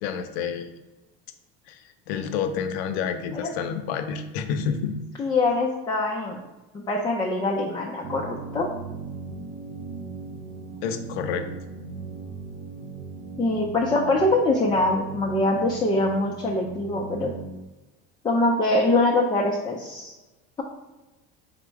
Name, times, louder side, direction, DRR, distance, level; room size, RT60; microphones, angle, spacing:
voice 1, 0.0-0.7 1.7-1.8 2.1-5.0 10.8-11.5, left 7 dB, 90° left, 8 dB, 0.5 m, -29 dB
voice 2, 5.2-6.4 6.7-8.7 13.4-17.3 18.2-20.1, left 2 dB, 15° left, -2 dB, 0.4 m, -23 dB
sound 1, 8.0-17.6, right 3 dB, 45° right, 0.5 m, -38 dB
4.2 x 2.0 x 4.5 m, 1.1 s
supercardioid pair, 120°, 31 cm